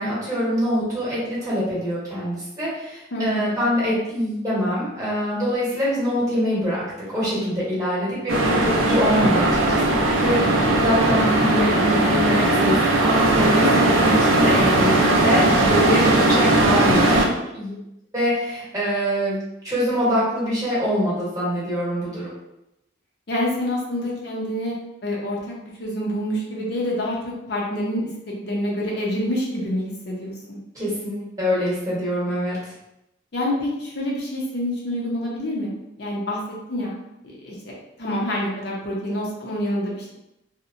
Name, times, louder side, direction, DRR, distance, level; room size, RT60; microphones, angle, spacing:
voice 1, 0.0-6.8 7.1-9.8 10.2-17.7 18.1-19.4 19.6-22.3 30.7-32.7, equal, 20° right, -8 dB, 0.9 m, -24 dB
voice 2, 3.1-3.5 15.8-16.0 23.3-24.7 25.0-25.4 25.8-27.1 27.5-28.0 28.4-30.6 33.3-35.7 36.0-36.4 36.7-36.9 37.2-37.5 38.0-40.1, left 1 dB, 55° left, -3 dB, 0.5 m, -27 dB
sound 1, 8.3-17.2, right 2 dB, 90° right, 0.5 m, -18 dB
2.8 x 2.1 x 2.5 m, 0.87 s
head